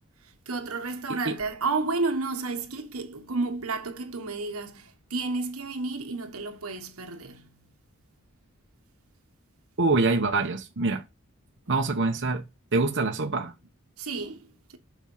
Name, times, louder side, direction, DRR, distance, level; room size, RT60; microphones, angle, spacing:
voice 1, 0.5-7.5 14.0-14.5, right 3 dB, 90° right, 1.6 m, -31 dB
voice 2, 9.8-11.0 11.7-12.4 12.7-13.5, right 3 dB, 55° right, 1.1 m, -25 dB
7.5 x 5.4 x 5.6 m
head